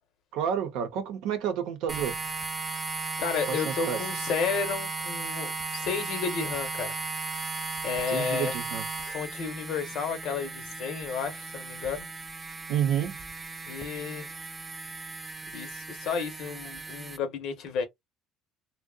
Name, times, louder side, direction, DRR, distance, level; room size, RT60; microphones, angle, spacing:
voice 1, 0.3-2.2 3.5-4.0 8.1-8.8 12.7-13.2, right 9 dB, 75° right, 0.7 m, -29 dB
sound 1, 1.9-17.2, right 3 dB, 20° right, 0.4 m, -36 dB
voice 2, 3.2-7.0 7.8-8.6 9.0-12.1 13.7-14.3 15.5-17.8, left 6 dB, 60° left, 0.8 m, -32 dB
2.7 x 2.0 x 2.3 m
cardioid pair, 130°, 0 cm